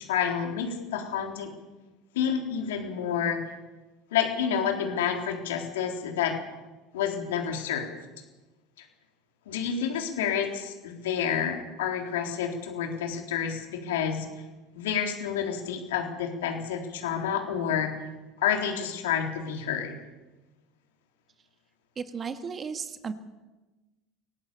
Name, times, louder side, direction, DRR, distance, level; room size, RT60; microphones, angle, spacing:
voice 1, 0.0-1.5 2.1-3.4 4.1-6.4 6.9-7.9 8.8-8.9 9.5-14.3 14.8-17.9 18.4-20.0, left 8 dB, 75° left, 3 dB, 3.8 m, -29 dB
voice 2, 21.9-23.1, right 6 dB, 30° right, 9 dB, 1.9 m, -34 dB
25.5 x 18.5 x 7.1 m, 1.1 s
hypercardioid pair, 70°, 0 cm